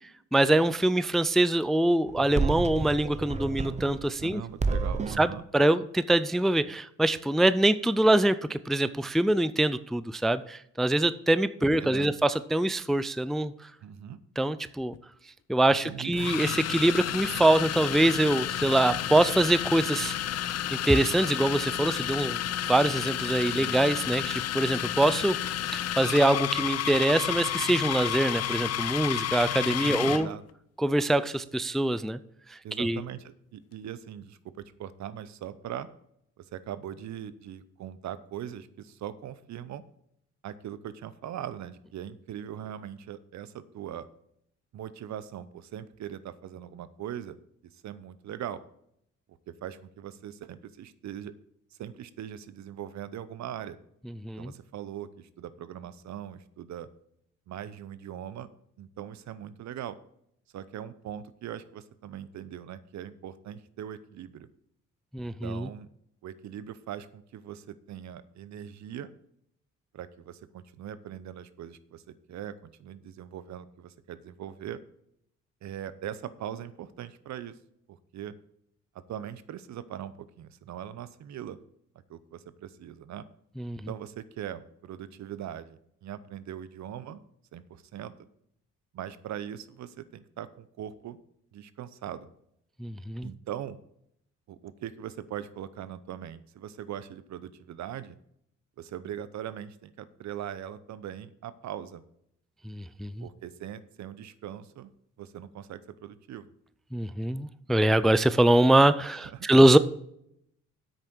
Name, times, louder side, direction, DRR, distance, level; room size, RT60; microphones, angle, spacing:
voice 1, 0.3-4.4 5.2-13.5 14.4-14.9 15.5-20.2 20.8-22.4 22.7-25.4 25.7-30.3 30.8-32.2 32.5-33.0 54.2-54.5 65.1-65.7 83.6-83.8 92.8-93.3 102.7-103.2 106.9-109.8, right 1 dB, ahead, 14 dB, 0.4 m, -24 dB
sound 1, 2.1-4.3 4.6-5.3, right 4 dB, 25° right, 0.8 m, -30 dB
voice 2, 4.2-5.4 11.6-12.1 13.8-14.2 15.8-16.2 23.5-23.7 29.8-30.4 32.6-35.9 36.4-39.8 40.4-44.1 44.7-47.4 47.8-48.6 49.5-51.3 51.8-53.8 54.4-56.9 57.5-58.5 58.8-60.0 60.5-64.5 65.2-65.9 66.2-69.1 69.9-74.8 75.6-77.6 77.9-78.3 79.1-81.6 82.1-83.2 83.9-87.2 87.5-88.3 88.9-91.2 91.5-92.3 93.2-93.8 94.5-98.2 98.8-102.0 103.2-104.9 105.2-106.5 109.1-109.5, right 10 dB, 65° right, 16 dB, 0.8 m, -40 dB
sound 2, 14.8-15.0 16.1-30.3, left 11 dB, 55° left, 0.6 m, -31 dB
8.3 x 6.5 x 6.1 m, 0.73 s
cardioid pair, 90°, 30 cm